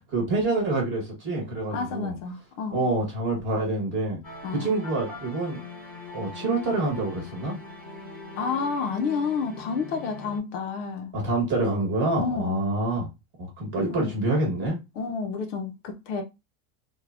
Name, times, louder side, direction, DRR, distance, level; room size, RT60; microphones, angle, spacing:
voice 1, 0.1-2.1 2.7-4.2 4.5-5.6 6.1-7.6 11.1-13.1 13.4-14.8, right 2 dB, 25° right, 1.0 m, -26 dB
voice 2, 1.7-2.8 4.4-4.7 8.4-11.1 12.2-12.7 13.8-14.1 15.0-16.2, left 5 dB, 55° left, 0.5 m, -30 dB
sound 1, 4.2-10.4, left 2 dB, 5° left, 0.7 m, -41 dB
3.3 x 2.2 x 2.3 m
supercardioid pair, 165°, 47 cm